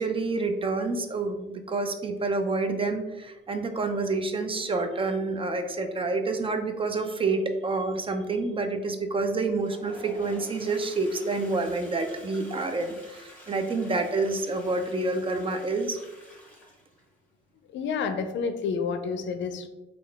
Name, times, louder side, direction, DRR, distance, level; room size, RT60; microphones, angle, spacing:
voice 1, 0.0-16.0, right 3 dB, 25° right, 6 dB, 0.4 m, -28 dB
Toilet flush, 9.5-17.1, equal, 10° left, 1.3 m, -49 dB
voice 2, 17.7-19.7, left 5 dB, 70° left, 8 dB, 0.4 m, -29 dB
3.6 x 2.4 x 3.4 m, 1.1 s
cardioid pair, 90°, 20 cm